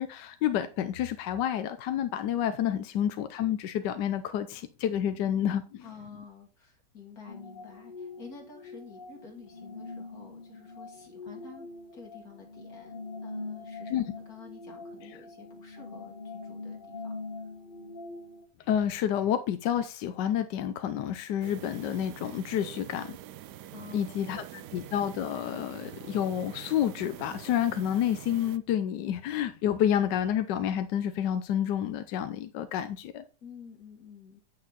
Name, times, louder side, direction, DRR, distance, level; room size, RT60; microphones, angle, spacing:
voice 1, 0.0-5.8 13.9-14.0 18.7-23.2 23.9-33.2, left 10 dB, 80° left, 1.3 m, -29 dB
voice 2, 5.8-11.7 11.9-17.1 23.7-24.2 24.5-24.7 33.4-34.4, left 5 dB, 60° left, 2.3 m, -50 dB
sound 1, 7.3-18.5, left 3 dB, 30° left, 1.7 m, -43 dB
sound 2, 21.4-28.6, right 13 dB, 75° right, 1.2 m, -45 dB
8.6 x 6.4 x 4.0 m
omnidirectional pair, 1.8 m